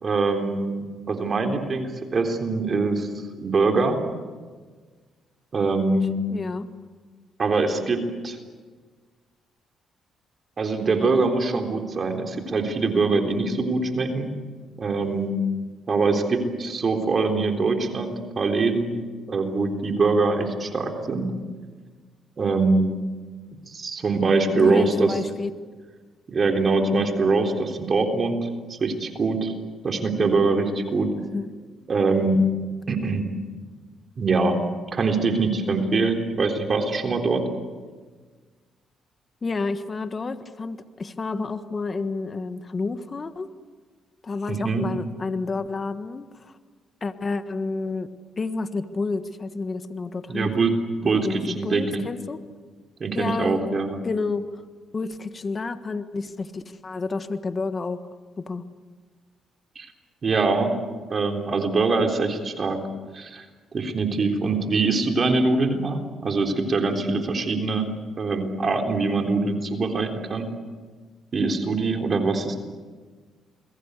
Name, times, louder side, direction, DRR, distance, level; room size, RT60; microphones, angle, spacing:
voice 1, 0.0-3.1 3.4-4.0 5.5-6.2 7.4-8.4 10.6-14.3 14.8-15.4 15.9-18.9 19.3-21.3 22.4-22.9 23.7-25.1 26.3-29.5 29.8-31.1 31.9-32.4 32.9-33.3 34.2-34.6 34.9-37.4 44.5-44.9 50.3-50.7 51.0-52.0 53.0-54.0 59.8-59.9 60.2-60.7 61.1-62.8 63.1-63.4 63.7-67.9 68.2-70.5 71.3-72.6, right 3 dB, 40° right, 4 dB, 3.7 m, -23 dB
voice 2, 6.3-6.7 24.6-25.5 31.3-31.5 39.4-43.5 44.2-46.5 47.0-48.1 48.4-50.5 51.0-52.4 53.1-53.7 54.0-54.6 54.9-58.0 58.4-58.6, left 3 dB, 35° left, 10 dB, 1.5 m, -30 dB
29.0 x 21.5 x 8.3 m, 1.5 s
cardioid pair, 90°, 0 cm